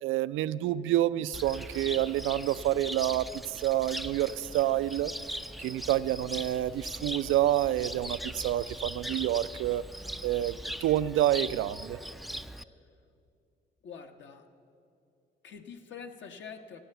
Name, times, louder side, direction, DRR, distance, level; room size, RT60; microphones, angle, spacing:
voice 1, 0.0-5.1 5.6-9.8 10.2-12.0, right 13 dB, 85° right, 16 dB, 0.4 m, -28 dB
Cricket, 1.3-12.6, equal, ahead, 0.3 m, -40 dB
voice 2, 13.8-14.5 15.4-16.8, left 6 dB, 70° left, 5 dB, 1.2 m, -45 dB
15.0 x 9.1 x 7.8 m, 2.4 s
cardioid pair, 90°, 20 cm